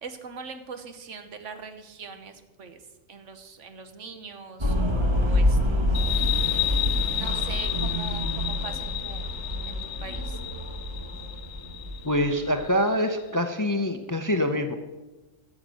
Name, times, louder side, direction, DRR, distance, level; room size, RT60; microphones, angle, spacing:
voice 1, 0.0-2.8 3.1-5.6 7.1-9.3 9.7-10.4, right 5 dB, 70° right, 8 dB, 1.4 m, -42 dB
sound 1, 4.6-12.6, left 1 dB, 20° right, 1.4 m, -27 dB
sound 2, 5.9-13.1, left 13 dB, 70° left, 0.9 m, -32 dB
voice 2, 12.0-14.8, left 1 dB, 20° left, 7 dB, 0.5 m, -25 dB
14.0 x 7.3 x 6.3 m, 1.1 s
omnidirectional pair, 1.3 m